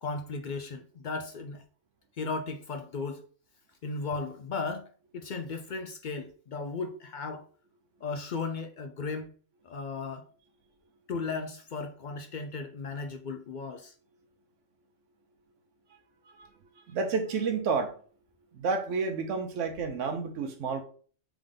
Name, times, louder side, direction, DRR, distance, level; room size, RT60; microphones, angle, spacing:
voice 1, 0.0-1.6 2.2-3.2 3.8-4.9 5.1-7.4 8.0-9.3 9.6-10.3 11.1-13.9, left 4 dB, 60° left, 0.5 m, -36 dB
voice 2, 16.9-17.9 18.5-20.8, right 4 dB, 85° right, 1.0 m, -30 dB
3.5 x 3.5 x 3.6 m
omnidirectional pair, 1.2 m